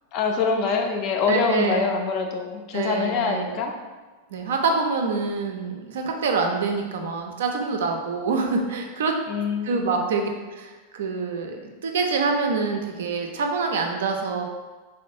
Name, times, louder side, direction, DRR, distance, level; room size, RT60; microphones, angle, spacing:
voice 1, 0.1-3.7 9.3-10.0, left 5 dB, 40° left, 3 dB, 0.3 m, -25 dB
voice 2, 1.3-1.9 2.7-3.5 4.3-9.2 9.6-14.4, right 4 dB, 60° right, 3 dB, 0.3 m, -26 dB
3.5 x 2.2 x 2.6 m, 1.3 s
figure-of-eight pair, 90°, 0 cm